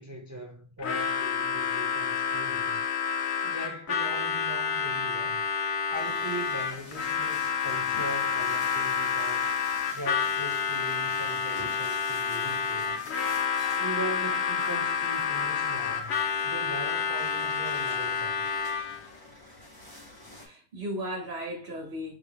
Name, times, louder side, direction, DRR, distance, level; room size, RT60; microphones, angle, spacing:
voice 1, 0.0-2.9 3.4-5.4 5.9-9.6 9.9-13.0 13.8-16.1 16.4-18.4, right 1 dB, 25° right, 0.4 m, -40 dB
Harmonica, 0.8-19.1, left 6 dB, 70° left, 0.9 m, -29 dB
sound 1, 5.9-20.5, left 2 dB, 20° left, 1.9 m, -47 dB
voice 2, 13.5-13.8 20.4-22.2, equal, 60° right, 1.6 m, -36 dB
4.9 x 3.4 x 3.2 m
omnidirectional pair, 1.2 m